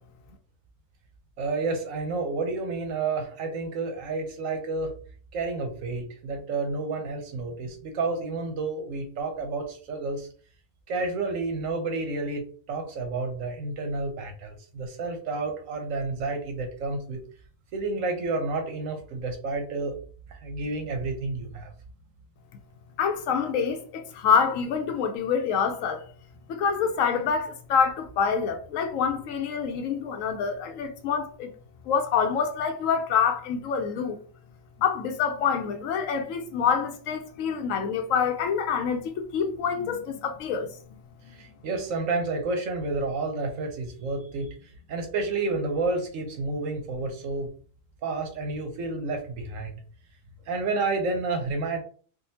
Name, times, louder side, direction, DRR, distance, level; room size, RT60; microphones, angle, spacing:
voice 1, 1.4-4.9 5.3-10.3 10.9-17.2 17.7-19.9 20.3-21.7 41.3-44.5 44.9-47.5 48.0-49.7 50.5-51.8, right 3 dB, 80° right, 1.1 m, -30 dB
voice 2, 23.0-26.0 26.5-31.5 31.9-34.2 34.8-40.7, left 6 dB, 80° left, 1.0 m, -26 dB
3.7 x 2.3 x 2.6 m
omnidirectional pair, 1.3 m